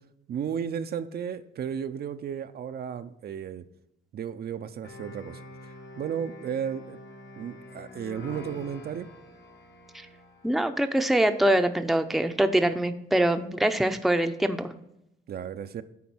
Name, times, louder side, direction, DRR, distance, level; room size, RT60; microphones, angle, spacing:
voice 1, 0.3-3.7 4.1-5.4 6.0-7.0 7.4-9.1 15.3-15.8, right 8 dB, 50° right, 9 dB, 0.5 m, -34 dB
sound 1, 4.8-10.8, left 2 dB, 60° left, 1.4 m, -46 dB
voice 2, 10.4-14.7, right 1 dB, ahead, 7 dB, 0.6 m, -24 dB
9.4 x 3.9 x 6.0 m, 0.84 s
cardioid pair, 90°, 20 cm